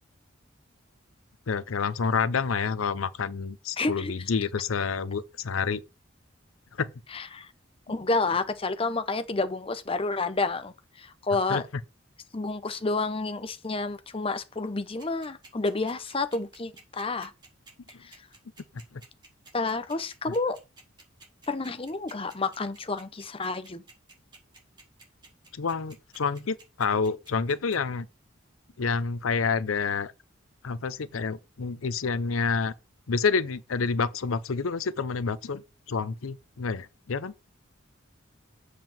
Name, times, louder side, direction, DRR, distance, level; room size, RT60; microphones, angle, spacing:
voice 1, 1.5-5.8 6.7-6.9 11.5-11.6 18.7-19.0 25.5-28.1 28.8-30.1 30.6-32.7 33.1-37.3, left 5 dB, 85° left, 0.6 m, -28 dB
voice 2, 3.8-4.1 7.1-7.5 7.9-11.6 12.3-17.3 18.0-18.1 19.5-20.6 21.5-23.8, left 3 dB, 25° left, 0.7 m, -30 dB
sound 1, 15.0-27.8, right 3 dB, 20° right, 4.1 m, -51 dB
7.6 x 4.8 x 7.0 m
head